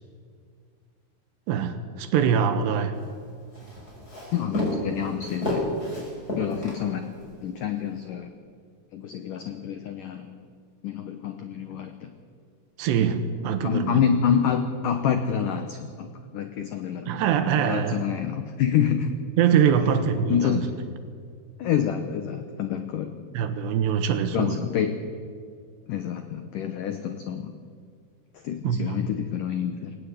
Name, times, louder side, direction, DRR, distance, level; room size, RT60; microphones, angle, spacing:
voice 1, 1.5-3.0 12.8-14.0 17.1-18.1 19.4-20.7 23.3-24.6 28.6-29.0, right 7 dB, 75° right, 10 dB, 3.1 m, -23 dB
Walk footsteps, 2.9-7.3, left 1 dB, 20° left, 5.7 m, -31 dB
voice 2, 4.3-5.7 6.4-7.1 7.4-8.3 8.9-10.3 10.8-12.1 13.6-16.1 16.3-19.1 20.3-20.7 21.6-23.1 24.3-25.0 25.9-27.5 28.3-30.0, left 8 dB, 85° left, 7 dB, 1.9 m, -27 dB
20.0 x 18.5 x 8.3 m, 2.2 s
omnidirectional pair, 5.3 m